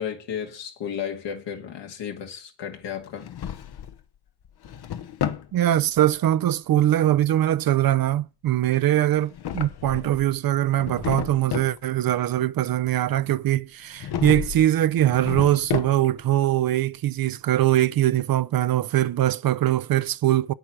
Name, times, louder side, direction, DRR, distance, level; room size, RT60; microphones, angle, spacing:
voice 1, 0.0-3.3, left 8 dB, 80° left, 2.0 m, -33 dB
Drawer open or close, 3.0-4.0 4.5-5.5 9.1-10.3 10.7-11.8 14.0-14.7 15.0-16.3, left 9 dB, 60° left, 0.9 m, -32 dB
voice 2, 5.5-20.5, right 13 dB, 55° right, 0.6 m, -22 dB
8.6 x 8.2 x 6.1 m
cardioid pair, 75°, 43 cm